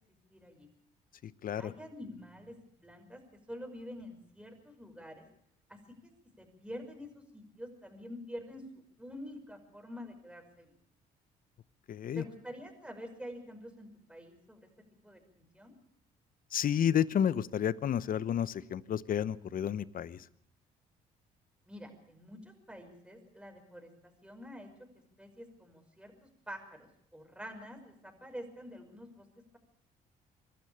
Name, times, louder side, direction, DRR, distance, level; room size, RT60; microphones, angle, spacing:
voice 1, 0.3-0.7 1.6-2.6 2.8-3.2 3.5-5.3 5.7-6.1 6.4-8.6 9.0-10.8 12.1-14.6 15.0-15.7 21.7-23.9 24.2-24.7 25.2-29.3, equal, 5° right, 4 dB, 5.7 m, -47 dB
voice 2, 1.2-1.7 11.9-12.2 16.5-20.2, left 9 dB, 55° left, 17 dB, 1.0 m, -31 dB
25.0 x 12.0 x 8.7 m, 0.69 s
supercardioid pair, 65°, 18 cm